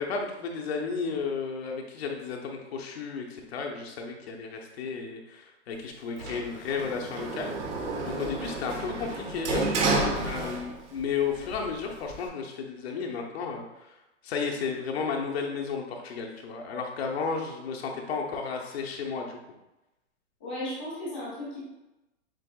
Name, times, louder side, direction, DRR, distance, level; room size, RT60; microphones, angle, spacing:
voice 1, 0.0-7.5 8.0-9.9 10.2-14.0 14.2-19.4, left 5 dB, 60° left, 1 dB, 0.9 m, -33 dB
Sliding door, 6.2-11.0 11.3-12.3, right 2 dB, 75° right, 1.1 m, -31 dB
voice 2, 20.4-21.6, left 1 dB, 10° left, -7 dB, 0.3 m, -35 dB
7.5 x 2.9 x 2.3 m, 0.97 s
hypercardioid pair, 165°, 35 cm